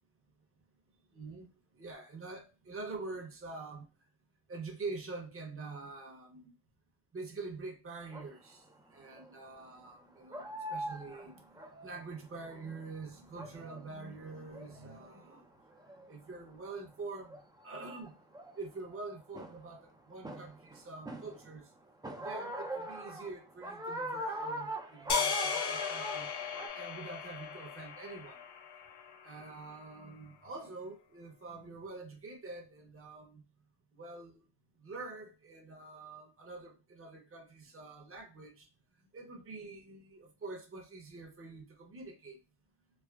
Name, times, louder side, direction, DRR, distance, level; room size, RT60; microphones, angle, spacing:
voice 1, 1.1-1.5 1.7-3.9 4.5-6.5 7.1-15.5 15.9-18.2 18.6-21.7 22.2-26.3 26.7-28.4 29.2-33.4 33.9-34.4 34.8-38.7 39.0-42.4, right 3 dB, 30° right, 0.9 m, -46 dB
sound 1, 8.1-8.3 9.1-9.4 9.9-10.0 10.3-12.9 13.2-13.8 14.2-15.1 15.7-16.1 16.9-17.0 17.3-19.0 19.3-19.8 20.2-21.6 22.0-26.7, equal, 10° right, 0.5 m, -41 dB
sound 2, 25.1-29.5, left 6 dB, 65° left, 0.6 m, -37 dB
3.3 x 2.1 x 2.3 m
cardioid pair, 65°, 42 cm